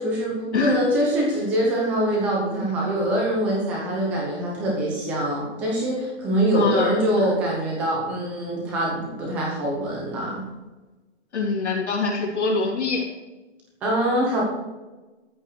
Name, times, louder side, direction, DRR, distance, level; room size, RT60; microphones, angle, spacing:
voice 1, 0.0-10.4 13.8-14.4, right 1 dB, 5° right, -3 dB, 0.8 m, -24 dB
voice 2, 6.5-7.0 11.3-13.0, left 4 dB, 70° left, -3 dB, 3.7 m, -23 dB
13.5 x 5.3 x 6.5 m, 1.1 s
hypercardioid pair, 180°, 35 cm